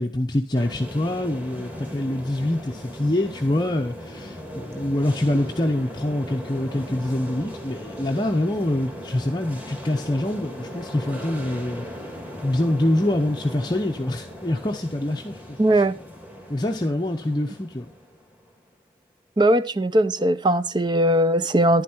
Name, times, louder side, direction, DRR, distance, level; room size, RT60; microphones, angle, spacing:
voice 1, 0.0-11.9 12.4-15.8 16.5-17.9, left 1 dB, 20° left, 0.7 m, -25 dB
sound 1, 0.5-18.7, equal, 10° right, 2.1 m, -38 dB
voice 2, 15.6-16.0 19.4-21.8, right 1 dB, 25° right, 0.5 m, -19 dB
11.0 x 9.9 x 4.4 m
head